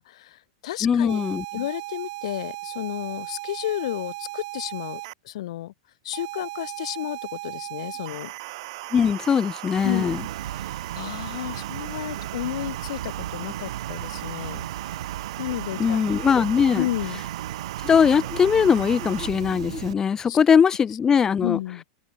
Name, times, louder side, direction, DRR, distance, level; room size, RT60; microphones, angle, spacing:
voice 1, 0.0-1.2 1.5-5.7 6.0-8.3 9.8-10.1 10.5-15.0 15.4-16.0 16.7-17.2 20.2-20.4 21.4-21.8, left 14 dB, 70° left, 6.7 m, -32 dB
voice 2, 0.8-1.4 8.9-10.2 15.8-16.9 17.8-21.6, left 7 dB, 20° left, 1.1 m, -20 dB
sound 1, 1.1-5.1 6.1-19.3, right 21 dB, 60° right, 5.5 m, -37 dB
sound 2, 9.8-19.9, right 11 dB, 90° right, 2.2 m, -36 dB
open air
supercardioid pair, 145°, 3 cm